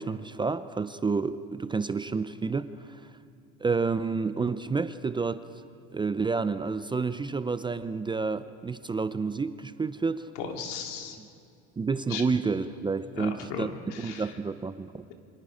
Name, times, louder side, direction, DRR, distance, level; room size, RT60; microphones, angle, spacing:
voice 1, 0.0-3.1 3.6-5.4 5.9-10.3 11.2-11.3 11.8-14.9, right 4 dB, 15° right, 12 dB, 0.5 m, -30 dB
voice 2, 10.4-11.2 12.1-12.2 13.1-14.2, left 6 dB, 80° left, 3 dB, 2.9 m, -36 dB
28.5 x 24.5 x 5.0 m, 2.4 s
supercardioid pair, 120°, 35 cm